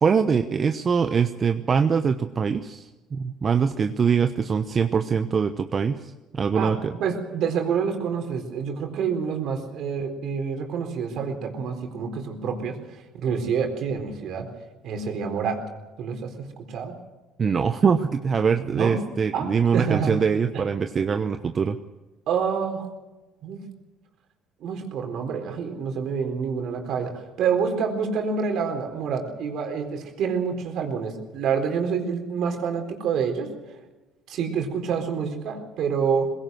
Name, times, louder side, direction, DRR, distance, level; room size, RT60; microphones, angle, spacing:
voice 1, 0.0-6.9 17.4-21.8, right 6 dB, 40° right, 8 dB, 0.9 m, -23 dB
voice 2, 6.5-14.5 14.8-15.6 16.0-16.9 18.7-19.0 19.3-20.2 20.5-20.6 22.3-22.9 23.4-23.6 24.6-33.5 34.3-36.3, right 6 dB, 65° right, 4 dB, 4.1 m, -27 dB
21.0 x 17.0 x 7.9 m, 1.1 s
supercardioid pair, 75°, 0 cm